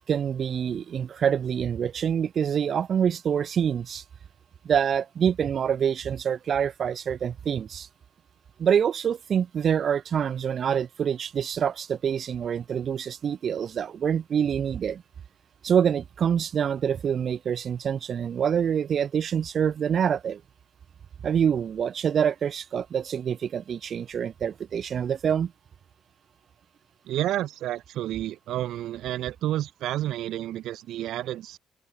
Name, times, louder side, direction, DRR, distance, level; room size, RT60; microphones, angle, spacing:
voice 1, 0.1-4.0 4.6-7.9 8.6-15.0 15.6-20.4 21.2-25.5, right 8 dB, 55° right, 1.7 m, -26 dB
voice 2, 27.1-31.6, right 13 dB, 85° right, 0.8 m, -30 dB
cardioid pair, 90°, 0 cm